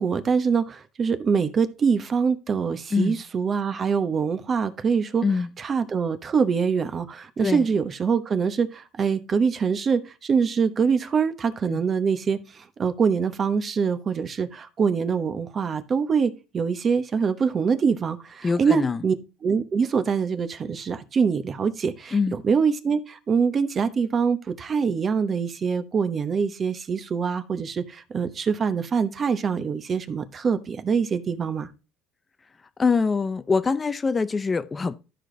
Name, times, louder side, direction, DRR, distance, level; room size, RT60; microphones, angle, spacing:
voice 1, 0.0-5.2 5.6-19.1 19.4-22.2 22.4-31.7, right 6 dB, 35° right, 1.0 m, -24 dB
voice 2, 18.4-19.0 22.1-22.3 32.8-34.9, left 4 dB, 20° left, 0.6 m, -24 dB
12.5 x 5.0 x 3.9 m
cardioid pair, 120°, 0 cm